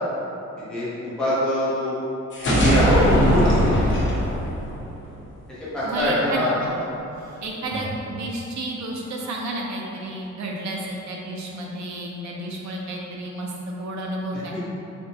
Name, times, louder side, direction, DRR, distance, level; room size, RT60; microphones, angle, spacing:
voice 1, 0.7-2.0 2.6-2.9 3.3-3.8 5.7-6.5, left 1 dB, 5° left, -11 dB, 0.7 m, -24 dB
sound 1, 2.3-5.2, equal, 40° left, 0.9 m, -22 dB
sound 2, 2.7-4.2 5.9-6.8 7.1-7.2 7.6-7.9, equal, 30° right, 0.8 m, -22 dB
voice 2, 5.8-6.4 7.4-14.6, right 1 dB, 70° right, -1 dB, 0.7 m, -31 dB
4.4 x 3.9 x 2.8 m, 2.9 s
wide cardioid pair, 180°, 29 cm